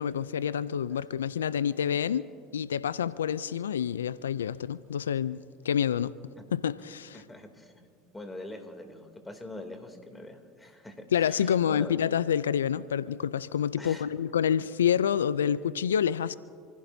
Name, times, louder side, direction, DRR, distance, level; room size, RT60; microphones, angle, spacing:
voice 1, 0.0-6.1 6.5-7.2 11.1-16.3, left 8 dB, 90° left, 0.3 m, -28 dB
voice 2, 7.1-7.9 8.1-12.0 13.8-14.1, left 2 dB, 15° left, 2.7 m, -44 dB
28.5 x 15.5 x 2.7 m
hypercardioid pair, 80°, 0 cm